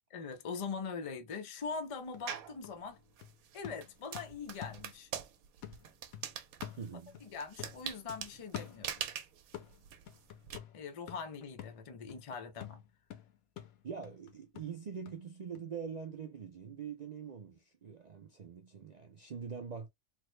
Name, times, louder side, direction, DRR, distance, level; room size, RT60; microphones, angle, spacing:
voice 1, 0.1-3.0 3.5-5.1 7.2-9.0 10.7-12.8, left 5 dB, 65° left, 0.3 m, -42 dB
sound 1, 1.7-1.8 2.1-5.3 5.6-7.3 7.6-9.2 9.5-15.2 15.5-15.6, left 10 dB, 80° left, 1.2 m, -49 dB
sound 2, 2.3-2.6 3.2-10.6, right 9 dB, 85° right, 1.1 m, -43 dB
voice 2, 6.8-7.2 13.8-19.9, right 6 dB, 65° right, 0.4 m, -44 dB
3.5 x 2.0 x 3.1 m
omnidirectional pair, 1.5 m